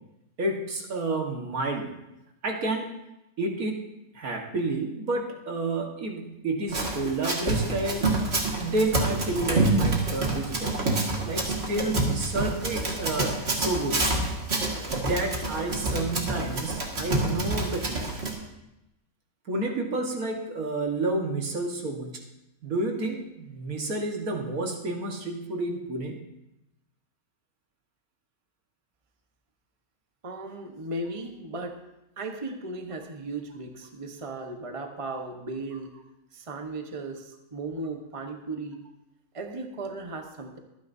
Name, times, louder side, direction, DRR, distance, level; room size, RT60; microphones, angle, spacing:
voice 1, 0.4-2.0 2.4-2.9 3.4-3.8 4.1-8.1 8.6-10.9 11.2-14.0 14.9-18.0 19.5-22.1 22.6-26.2, right 2 dB, 80° right, 1 dB, 2.0 m, -30 dB
Run, 6.7-18.3, right 2 dB, 45° right, 2.1 m, -27 dB
voice 2, 30.2-31.8 32.2-35.9 36.3-38.8 39.3-40.6, right 2 dB, 25° right, 4 dB, 1.1 m, -36 dB
24.0 x 9.5 x 2.7 m, 0.91 s
omnidirectional pair, 1.5 m